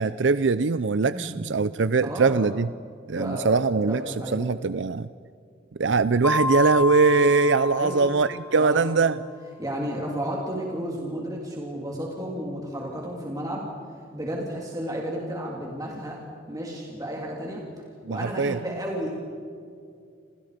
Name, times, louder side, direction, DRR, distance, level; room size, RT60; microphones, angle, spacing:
voice 1, 0.0-2.7 3.1-5.1 5.8-9.2 18.1-18.6, right 4 dB, 70° right, 14 dB, 0.6 m, -22 dB
voice 2, 2.0-2.5 3.1-4.4 7.8-8.0 8.5-9.0 9.6-13.7 14.1-16.2 16.5-17.6 18.1-19.1, equal, 20° right, -2 dB, 3.4 m, -32 dB
Mallet percussion, 6.2-8.9, left 2 dB, 10° left, 5.0 m, -29 dB
29.5 x 28.5 x 5.2 m, 2.3 s
head